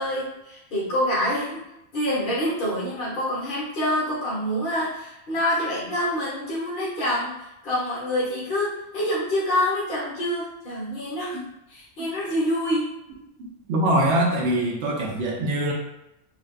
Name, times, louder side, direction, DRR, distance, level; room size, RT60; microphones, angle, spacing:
voice 1, 0.0-1.6 1.9-12.9, equal, 55° left, -8 dB, 1.1 m, -26 dB
voice 2, 13.7-15.7, right 1 dB, 90° right, -2 dB, 0.9 m, -23 dB
3.3 x 2.1 x 2.3 m, 0.86 s
omnidirectional pair, 1.1 m